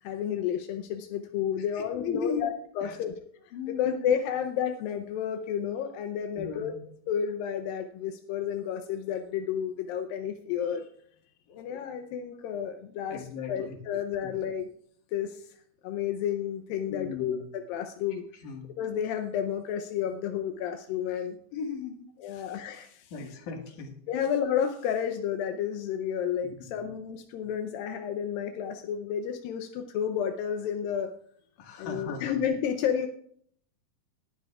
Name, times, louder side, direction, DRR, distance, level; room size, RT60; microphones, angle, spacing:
voice 1, 0.0-3.2 3.4-6.7 7.1-10.9 11.6-14.7 15.1-15.5 15.8-18.3 18.8-21.4 22.2-23.3 24.1-31.1 31.8-33.1, left 8 dB, 85° left, 5 dB, 2.5 m, -31 dB
voice 2, 1.8-2.5 2.8-3.0 3.5-4.1 6.4-6.8 11.5-11.6 13.1-13.8 14.2-14.3 16.9-17.4 18.4-18.7 21.5-22.0 22.3-22.5 23.1-23.9 26.7-26.9 31.6-32.4, left 5 dB, 65° left, 2 dB, 3.1 m, -36 dB
19.5 x 12.0 x 2.4 m, 0.63 s
omnidirectional pair, 4.0 m